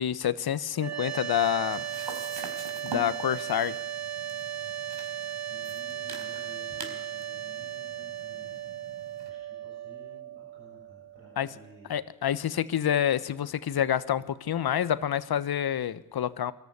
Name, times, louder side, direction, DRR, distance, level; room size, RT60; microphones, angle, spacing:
voice 1, 0.0-1.8 2.8-3.8 11.4-11.5 11.9-16.5, left 10 dB, 45° left, 15 dB, 1.3 m, -28 dB
sound 1, 0.8-11.9, right 10 dB, 30° right, 1.4 m, -37 dB
sound 2, 1.0-9.3, right 3 dB, 50° right, 4.5 m, -45 dB
voice 2, 5.5-8.9 9.2-11.9, right 1 dB, 85° right, -3 dB, 6.9 m, -54 dB
23.5 x 14.0 x 9.9 m, 0.96 s
hypercardioid pair, 50°, 50 cm